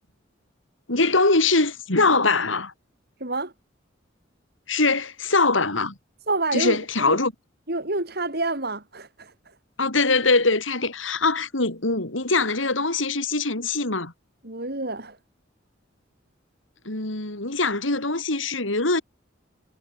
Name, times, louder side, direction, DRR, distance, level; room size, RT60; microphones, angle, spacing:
voice 1, 0.9-2.7 4.7-5.9 6.5-7.3 9.8-14.1 16.8-19.0, left 3 dB, 85° left, 4.8 m, -22 dB
voice 2, 3.2-3.5 6.3-7.2 7.7-9.5 14.4-15.2, right 2 dB, 55° right, 6.0 m, -28 dB
head